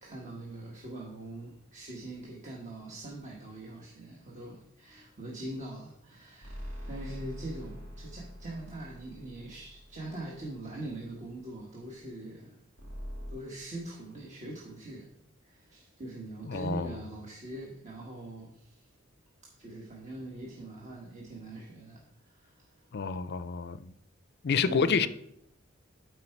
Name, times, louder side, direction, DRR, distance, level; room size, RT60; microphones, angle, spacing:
voice 1, 0.0-12.6 13.3-15.1 15.4-18.9 19.6-22.9 24.6-25.1, right 1 dB, 35° right, 1.4 m, -42 dB
sound 1, 6.4-10.9 12.8-13.3, equal, 80° right, 2.1 m, -44 dB
voice 2, 16.4-17.0 22.9-23.9 24.4-25.1, left 5 dB, 55° left, 0.5 m, -29 dB
12.5 x 4.7 x 4.5 m
head